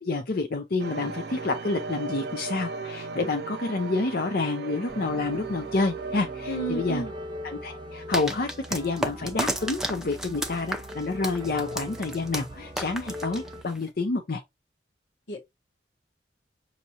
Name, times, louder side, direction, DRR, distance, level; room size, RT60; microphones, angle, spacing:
voice 1, 0.0-7.0 7.4-14.4, left 3 dB, 55° left, 0.6 m, -29 dB
sound 1, 0.8-8.8, right 4 dB, 65° right, 0.5 m, -37 dB
sound 2, 4.9-13.6, left 1 dB, 25° right, 0.9 m, -41 dB
voice 2, 6.5-7.1 15.3-15.4, right 3 dB, 80° left, 1.3 m, -31 dB
sound 3, 8.1-13.9, right 1 dB, 5° right, 0.6 m, -33 dB
5.9 x 2.7 x 2.8 m
head